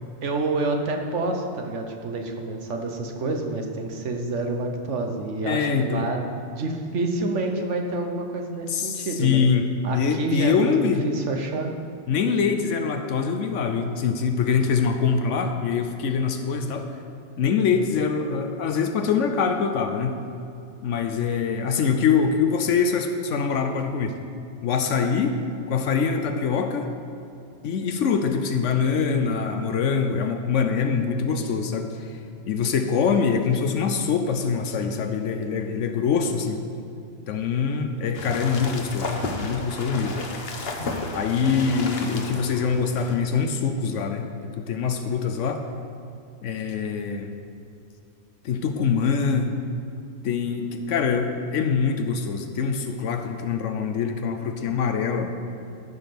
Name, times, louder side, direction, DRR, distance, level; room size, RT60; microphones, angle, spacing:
voice 1, 0.2-9.4 9.8-10.7 11.0-11.7 41.4-41.7, right 2 dB, 80° right, 3 dB, 1.4 m, -28 dB
voice 2, 5.4-6.1 8.7-9.6 9.9-11.1 12.1-16.9 17.4-20.1 20.8-24.1 24.6-25.4 25.7-26.9 27.6-32.2 32.5-36.6 37.3-40.2 41.1-44.3 44.6-45.6 46.4-47.3 48.4-49.6 50.2-55.4, left 6 dB, 85° left, 6 dB, 1.1 m, -24 dB
sound 1, 38.1-43.2, left 2 dB, 60° left, 1.2 m, -33 dB
13.5 x 5.3 x 5.9 m, 2.6 s
omnidirectional pair, 1.2 m